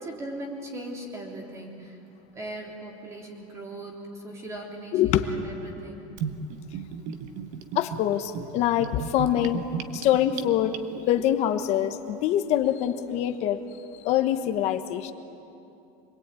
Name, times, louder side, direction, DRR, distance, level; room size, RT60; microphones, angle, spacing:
voice 1, 0.0-2.0 2.3-6.1, right 1 dB, 15° right, 0 dB, 3.3 m, -39 dB
voice 2, 4.9-5.3 7.7-9.7 9.9-10.8 11.1-13.6 14.0-15.1, left 11 dB, 35° left, 9 dB, 1.1 m, -24 dB
Gurgling / Bathtub (filling or washing), 6.2-11.2, right 7 dB, 40° right, 1.3 m, -35 dB
26.0 x 21.5 x 9.1 m, 2.8 s
cardioid pair, 175°, 18 cm